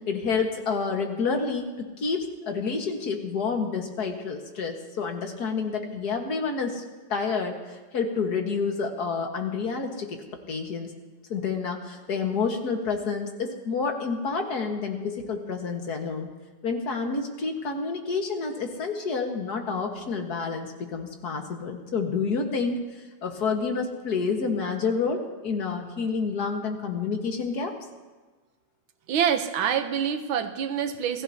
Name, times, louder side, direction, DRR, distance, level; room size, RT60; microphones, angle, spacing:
voice 1, 0.1-6.8 7.1-10.9 11.3-16.3 16.6-22.8 23.2-27.8, left 5 dB, 50° left, 3 dB, 1.9 m, -29 dB
voice 2, 29.1-31.2, right 8 dB, 75° right, 9 dB, 1.7 m, -26 dB
28.0 x 16.0 x 2.8 m, 1.3 s
omnidirectional pair, 2.3 m